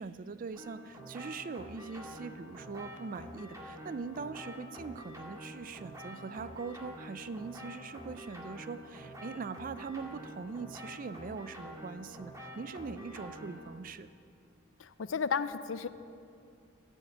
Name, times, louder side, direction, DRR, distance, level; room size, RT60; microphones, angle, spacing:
voice 1, 0.0-14.1, right 4 dB, 45° right, 13 dB, 0.4 m, -42 dB
sound 1, 0.5-13.7, equal, 15° right, 1.8 m, -47 dB
voice 2, 14.8-15.9, left 6 dB, 70° left, 13 dB, 0.5 m, -33 dB
14.5 x 6.5 x 8.7 m, 2.5 s
head